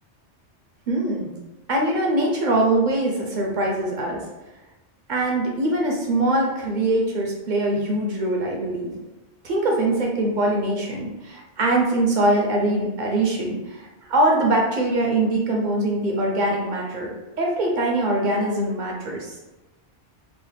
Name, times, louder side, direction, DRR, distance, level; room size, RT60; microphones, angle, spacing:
voice 1, 0.9-1.3 1.7-4.2 5.1-9.0 9.4-17.1 17.4-19.4, right 1 dB, 60° right, -1 dB, 0.5 m, -22 dB
3.1 x 2.0 x 3.2 m, 1.0 s
omnidirectional pair, 1.1 m